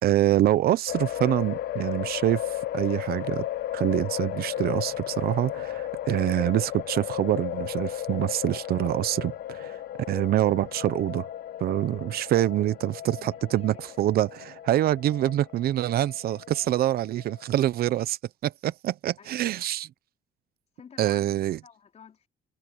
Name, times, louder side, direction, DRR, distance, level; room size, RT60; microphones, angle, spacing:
voice 1, 0.0-2.4 2.7-3.5 3.7-9.8 10.1-11.3 11.6-19.9 21.0-21.6, right 13 dB, 65° right, 0.9 m, -25 dB
sound 1, 0.9-17.8, left 12 dB, 65° left, 1.1 m, -35 dB
voice 2, 13.2-13.8 19.2-19.5 20.8-22.3, left 7 dB, 40° left, 3.9 m, -51 dB
cardioid pair, 110°, 17 cm